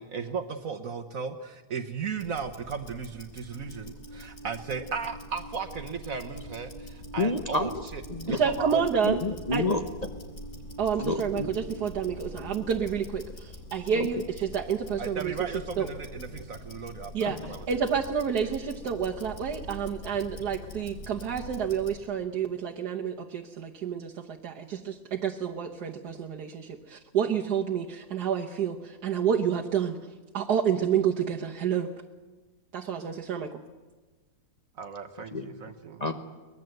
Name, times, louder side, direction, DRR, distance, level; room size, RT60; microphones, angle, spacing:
voice 1, 0.0-8.8 15.0-17.8 34.8-36.0, right 6 dB, 60° right, 6 dB, 1.4 m, -36 dB
Tick-tock, 2.1-22.1, left 1 dB, 65° left, 2.9 m, -44 dB
Alarm, 3.5-12.5, right 2 dB, 15° left, 3.0 m, -48 dB
voice 2, 7.2-7.8 8.1-8.4 9.0-10.1 11.0-11.5 13.9-14.1 17.2-17.5 35.3-35.7 36.0-36.1, left 2 dB, 30° left, 6 dB, 1.0 m, -30 dB
voice 3, 8.3-9.2 9.5-9.7 10.8-15.3 15.8-15.9 17.1-17.4 17.7-30.0 30.3-31.9 32.7-33.6, right 7 dB, 80° right, -1 dB, 1.7 m, -29 dB
23.0 x 19.5 x 7.9 m, 1.3 s
omnidirectional pair, 1.7 m